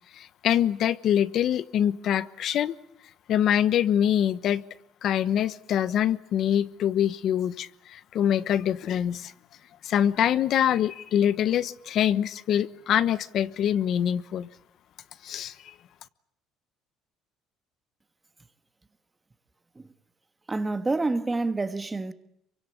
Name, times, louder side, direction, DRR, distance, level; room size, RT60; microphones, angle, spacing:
voice 1, 0.1-2.7 3.3-4.6 5.0-9.3 9.8-14.5 15.2-15.7, left 10 dB, 50° left, 1.1 m, -24 dB
voice 2, 20.5-22.1, right 3 dB, 15° right, 1.4 m, -28 dB
27.0 x 24.5 x 8.4 m
cardioid pair, 145°, 0 cm